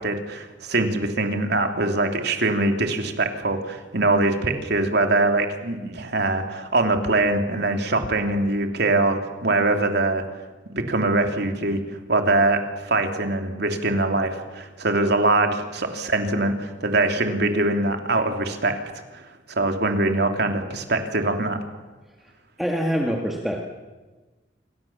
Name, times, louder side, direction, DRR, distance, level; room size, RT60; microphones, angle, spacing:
voice 1, 0.0-10.2 10.7-11.8 12.1-18.8 19.1-19.2 19.5-21.6, right 2 dB, 60° right, 5 dB, 3.2 m, -23 dB
voice 2, 22.6-23.6, equal, ahead, 0 dB, 2.2 m, -25 dB
27.5 x 25.5 x 7.3 m, 1.3 s
head